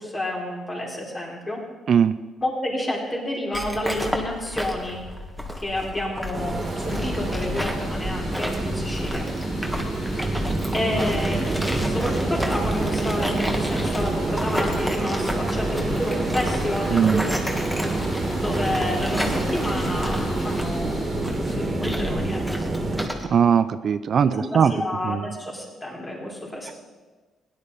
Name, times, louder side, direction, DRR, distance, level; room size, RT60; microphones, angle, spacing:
voice 1, 0.0-1.6 2.4-5.0 5.6-9.3 10.7-11.5 11.8-17.3 17.7-17.8 18.4-22.4 24.2-26.7, left 1 dB, 20° left, -3 dB, 4.1 m, -30 dB
sound 1, 3.5-23.2, equal, 5° left, 1.8 m, -32 dB
sound 2, 6.3-23.1, right 2 dB, 30° right, 2.0 m, -27 dB
sound 3, 6.4-22.6, left 2 dB, 80° left, 2.8 m, -43 dB
voice 2, 16.9-17.2 23.3-24.7 25.1-25.2, right 7 dB, 55° right, 12 dB, 0.4 m, -19 dB
17.0 x 10.5 x 4.1 m, 1.3 s
cardioid pair, 90°, 0 cm